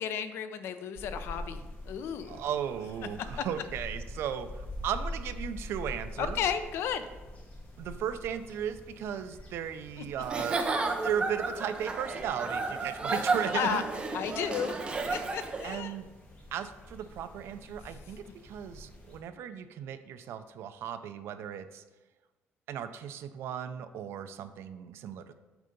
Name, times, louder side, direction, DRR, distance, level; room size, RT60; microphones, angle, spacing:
voice 1, 0.0-2.4 6.2-7.1 13.5-13.8 14.1-14.8 15.1-16.0, left 8 dB, 65° left, 10 dB, 0.5 m, -33 dB
sound 1, 0.9-19.2, left 1 dB, 30° left, 1.5 m, -45 dB
voice 2, 2.3-6.4 7.8-10.6 11.0-13.8 15.6-16.1 16.5-21.8 22.7-25.3, right 9 dB, 65° right, 11 dB, 0.5 m, -36 dB
Giggle / Chuckle chortle, 10.2-15.7, right 3 dB, 20° right, 0.6 m, -32 dB
8.0 x 3.8 x 5.1 m, 1.2 s
cardioid pair, 165°, 5 cm